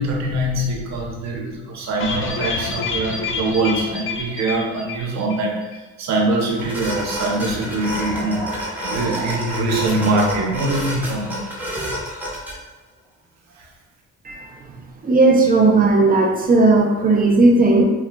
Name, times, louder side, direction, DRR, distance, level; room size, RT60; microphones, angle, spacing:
voice 1, 0.0-8.5 8.8-11.4 13.5-13.7, right 2 dB, 60° right, -1 dB, 0.8 m, -23 dB
sound 1, 2.0-5.5 5.7-5.8 6.1-6.2, left 4 dB, 45° left, 0.4 m, -28 dB
sound 2, 6.6-12.5, equal, 5° right, 0.8 m, -29 dB
voice 2, 15.0-17.8, right 3 dB, 30° right, 1 dB, 0.4 m, -15 dB
3.7 x 2.2 x 2.2 m, 1.1 s
cardioid pair, 90°, 30 cm